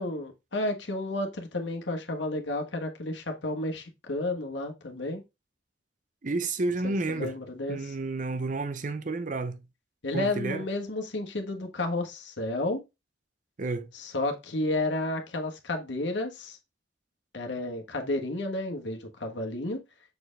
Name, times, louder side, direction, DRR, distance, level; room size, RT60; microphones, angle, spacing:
voice 1, 0.0-5.2 6.8-8.0 10.0-12.8 13.9-16.6 17.3-19.8, left 2 dB, 85° left, 1.4 m, -32 dB
voice 2, 6.2-7.3 7.7-9.6 10.1-10.6 13.6-13.9, right 3 dB, 45° right, 0.7 m, -30 dB
6.7 x 4.4 x 3.3 m
head